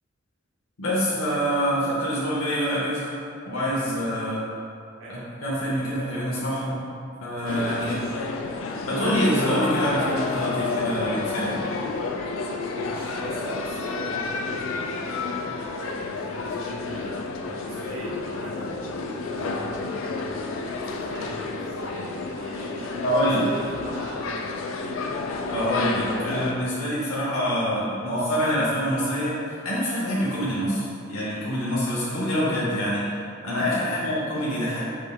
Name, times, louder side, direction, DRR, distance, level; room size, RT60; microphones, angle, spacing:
voice 1, 0.8-3.1 3.5-4.4 5.1-6.8 7.2-8.0 8.9-11.6 23.0-23.5 25.4-33.1 33.4-34.8, equal, 85° left, -8 dB, 0.8 m, -26 dB
sound 1, 7.5-26.5, left 3 dB, 70° left, 0.3 m, -30 dB
voice 2, 7.8-8.3 12.7-24.8 33.8-34.1, right 1 dB, 70° right, -6 dB, 0.6 m, -40 dB
5.3 x 3.5 x 2.2 m, 2.5 s
head